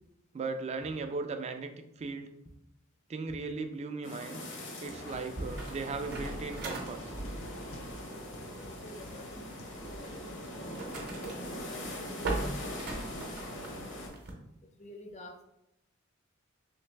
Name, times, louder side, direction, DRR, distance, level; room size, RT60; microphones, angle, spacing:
voice 1, 0.3-1.7 2.0-2.3 3.1-4.4 4.8-7.1, right 3 dB, 30° right, 7 dB, 0.3 m, -37 dB
sound 1, 4.0-14.1, left 1 dB, 60° left, 0.9 m, -42 dB
sound 2, 5.1-14.3, right 2 dB, 55° right, 0.7 m, -41 dB
sound 3, 6.4-11.3, left 2 dB, 85° left, 0.6 m, -55 dB
voice 2, 8.4-13.7 14.8-15.4, left 1 dB, 35° left, 3 dB, 0.5 m, -51 dB
3.2 x 3.1 x 3.3 m, 0.84 s
head